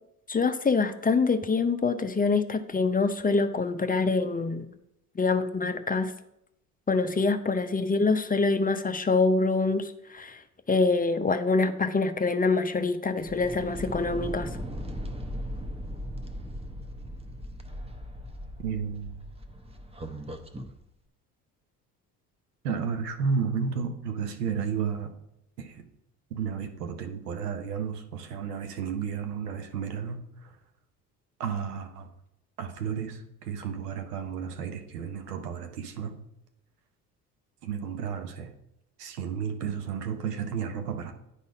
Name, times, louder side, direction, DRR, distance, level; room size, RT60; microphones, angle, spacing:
voice 1, 0.3-4.7 5.2-6.1 6.9-10.4 10.7-14.5, left 4 dB, 20° left, 9 dB, 0.7 m, -25 dB
sound 1, 13.2-20.7, equal, 15° right, 0.9 m, -38 dB
voice 2, 18.6-19.2 22.6-25.1 25.6-25.8 26.3-30.5 31.4-32.1 32.6-36.1 37.6-38.5 39.0-41.1, right 6 dB, 85° right, 7 dB, 1.0 m, -32 dB
10.0 x 4.1 x 4.8 m, 0.82 s
hypercardioid pair, 60°, 46 cm